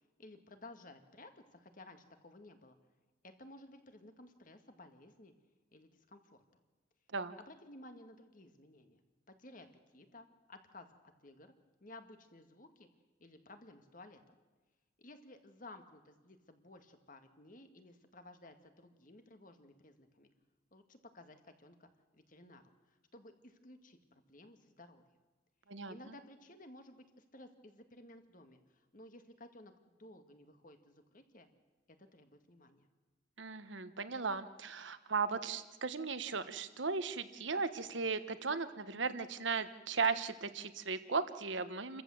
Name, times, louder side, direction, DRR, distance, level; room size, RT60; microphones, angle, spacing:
voice 1, 0.2-2.8 3.2-5.3 5.7-6.4 7.4-9.0 9.3-9.7 9.9-10.9 11.2-11.5 11.8-12.9 13.2-14.4 15.0-20.3 20.7-25.0 25.9-27.1 27.3-31.5 32.0-32.9, left 2 dB, 45° left, 7 dB, 1.9 m, -56 dB
voice 2, 33.4-42.0, right 4 dB, 75° right, 12 dB, 1.2 m, -36 dB
29.0 x 14.5 x 7.8 m, 1.3 s
head